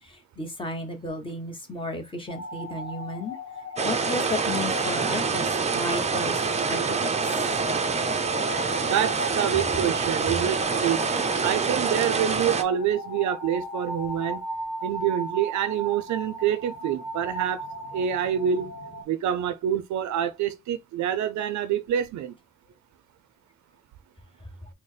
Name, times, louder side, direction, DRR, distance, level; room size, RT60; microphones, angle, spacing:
voice 1, 0.4-3.4 3.8-5.5 5.7-6.4 6.7-7.1, left 1 dB, 15° left, 1.0 m, -33 dB
sound 1, 2.3-19.0, equal, 60° left, 1.0 m, -37 dB
sound 2, 3.8-12.6, right 5 dB, 20° right, 0.5 m, -26 dB
voice 2, 8.8-11.0 11.4-14.4 14.8-17.6 17.9-18.7 19.1-22.3, right 9 dB, 70° right, 0.5 m, -26 dB
4.2 x 2.1 x 3.2 m
cardioid pair, 90°, 30 cm